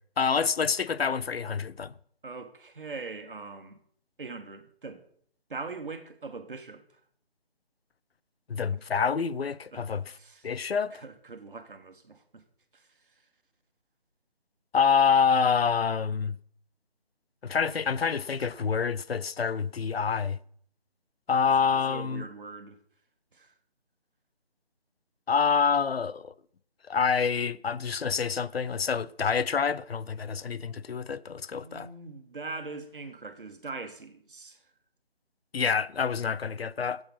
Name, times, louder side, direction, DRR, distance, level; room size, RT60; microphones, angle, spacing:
voice 1, 0.2-1.9 8.5-10.1 10.4-11.0 14.7-16.4 17.4-20.4 21.3-22.2 25.3-26.3 26.9-31.9 35.5-37.0, left 6 dB, 70° left, 0.6 m, -27 dB
voice 2, 2.2-3.8 4.2-5.0 5.5-6.8 8.7-8.8 9.7-9.8 10.1-10.4 10.9-12.4 12.7-12.8 21.7-22.8 23.3-23.5 31.5-34.6, right 3 dB, 55° right, 1.7 m, -41 dB
13.5 x 7.9 x 5.9 m
figure-of-eight pair, 165°, 31 cm